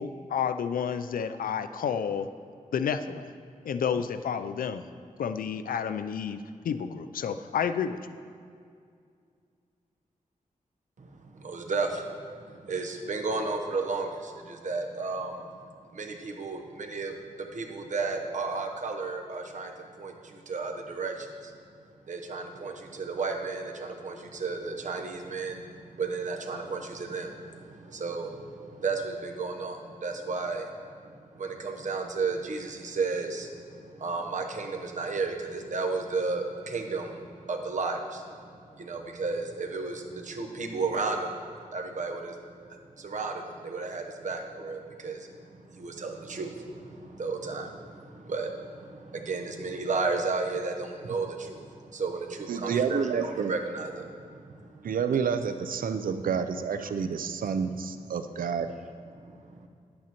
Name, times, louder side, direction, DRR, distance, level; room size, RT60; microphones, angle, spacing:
voice 1, 0.0-2.3 2.7-3.3 3.7-4.8 5.2-6.4 6.6-8.0, left 7 dB, 85° left, 11 dB, 0.4 m, -30 dB
voice 2, 11.4-12.1 12.5-15.5 15.9-19.7 20.0-21.5 22.1-25.6 26.0-30.7 31.3-33.6 34.0-38.2 38.8-41.4 41.7-42.3 43.0-45.3 45.7-51.7 51.9-54.3, right 4 dB, 60° right, 3 dB, 0.9 m, -33 dB
voice 3, 52.5-53.5 54.8-58.7, right 6 dB, 80° right, 9 dB, 0.5 m, -29 dB
10.5 x 8.6 x 2.9 m, 2.3 s
wide cardioid pair, 85°, 14 cm